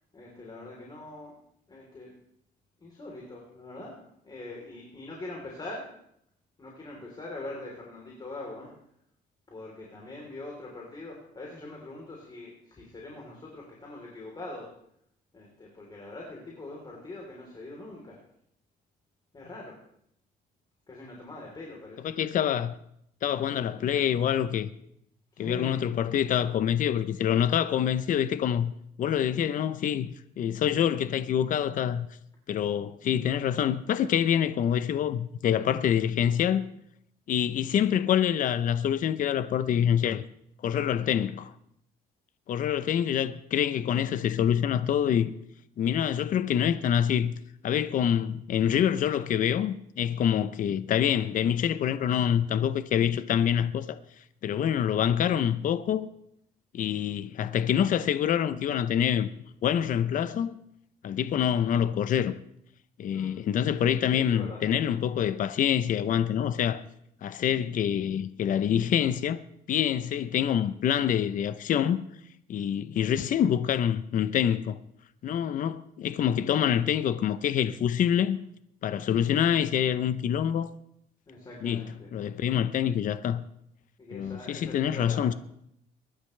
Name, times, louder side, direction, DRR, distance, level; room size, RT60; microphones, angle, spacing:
voice 1, 0.1-1.3 1.7-2.1 2.8-5.9 6.6-8.7 9.5-14.7 15.3-18.2 19.3-19.8 20.9-22.3 25.3-25.8 63.1-63.3 64.0-64.6 81.3-82.1 84.0-85.3, left 2 dB, 25° left, 3.6 m, -42 dB
voice 2, 22.0-22.8 23.2-24.7 25.4-28.7 29.0-32.1 32.5-36.6 37.3-40.2 40.6-41.5 42.5-45.3 45.8-47.3 47.6-54.0 54.4-56.1 56.7-59.3 59.6-60.6 61.0-62.4 63.0-66.8 67.2-69.4 69.7-72.0 72.5-74.8 75.2-78.4 78.8-80.7 81.6-81.9 82.1-83.4 84.1-85.3, left 9 dB, 50° left, 0.7 m, -26 dB
23.0 x 11.5 x 3.3 m
cardioid pair, 110°, 17 cm